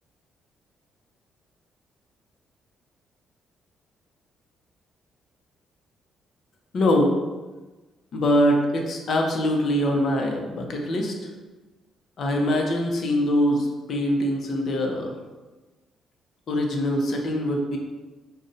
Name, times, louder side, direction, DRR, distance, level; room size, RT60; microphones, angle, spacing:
voice 1, 6.7-7.1 8.1-11.1 12.2-15.1 16.5-17.8, left 1 dB, 60° left, 2 dB, 0.5 m, -23 dB
2.5 x 2.1 x 3.7 m, 1.2 s
cardioid pair, 90°, 0 cm